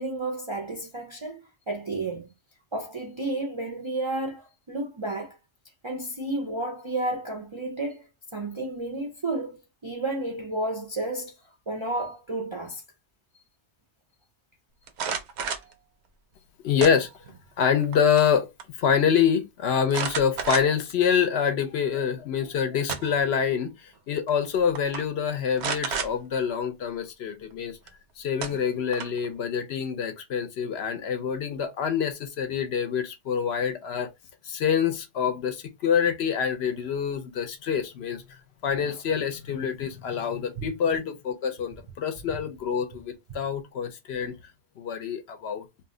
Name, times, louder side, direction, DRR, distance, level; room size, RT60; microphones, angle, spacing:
voice 1, 0.0-2.3 2.7-5.4 5.8-8.0 8.3-11.3 11.7-12.8 40.6-40.7 42.3-42.4, right 2 dB, 40° right, 0.4 m, -32 dB
sound 1, 14.9-15.7 16.8-17.4 17.8-18.3 18.6-18.7 19.9-20.9 21.5-21.6 22.6-23.3 24.3-24.5 24.8-25.0 25.6-26.1 27.9-28.0 28.4-29.3, right 6 dB, 70° right, 0.8 m, -31 dB
voice 2, 16.6-17.1 17.6-18.5 18.8-27.8 28.2-34.1 34.4-38.2 38.6-44.3 44.8-45.7, left 7 dB, 70° left, 0.8 m, -26 dB
2.6 x 2.0 x 3.6 m
omnidirectional pair, 1.2 m